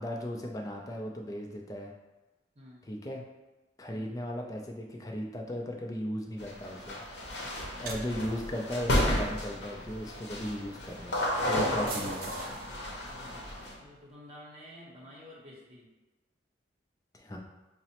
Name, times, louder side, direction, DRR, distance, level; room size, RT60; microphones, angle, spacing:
voice 1, 0.0-1.9 2.8-3.2 3.8-7.0 7.8-12.3 17.1-17.4, equal, 20° left, 0 dB, 0.4 m, -37 dB
voice 2, 2.5-2.9 3.9-4.1 13.8-15.9, left 1 dB, 35° right, -4 dB, 0.8 m, -50 dB
sound 1, 6.4-13.7, left 1 dB, 70° left, 0.7 m, -33 dB
sound 2, 7.6-14.0, right 2 dB, 55° right, 0.5 m, -46 dB
5.9 x 2.0 x 2.8 m, 1.1 s
head